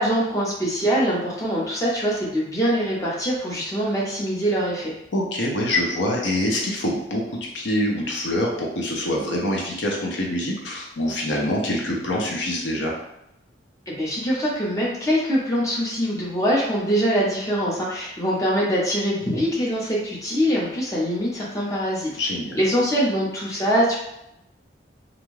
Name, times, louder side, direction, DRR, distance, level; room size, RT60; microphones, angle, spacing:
voice 1, 0.0-4.9 13.9-22.1 22.5-24.0, equal, 15° left, -5 dB, 0.7 m, -23 dB
voice 2, 5.1-7.2 7.5-12.9 22.2-22.6, left 1 dB, 80° left, -1 dB, 0.7 m, -25 dB
2.5 x 2.3 x 3.1 m, 0.83 s
head